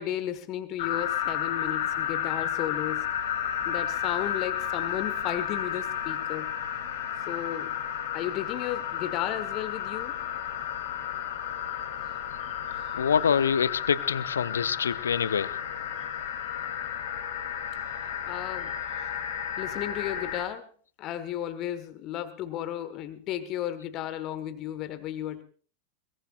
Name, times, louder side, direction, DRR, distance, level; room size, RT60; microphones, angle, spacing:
voice 1, 0.0-3.1 3.6-6.5 7.3-7.7 8.1-10.2 12.4-12.5 18.3-18.8 19.6-20.7 21.0-25.4, left 11 dB, 35° left, 1.5 m, -34 dB
sound 1, 0.8-20.4, left 9 dB, 55° left, 3.5 m, -32 dB
voice 2, 12.9-15.6, left 7 dB, 70° left, 0.8 m, -25 dB
22.0 x 21.5 x 2.5 m
figure-of-eight pair, 90°, 0 cm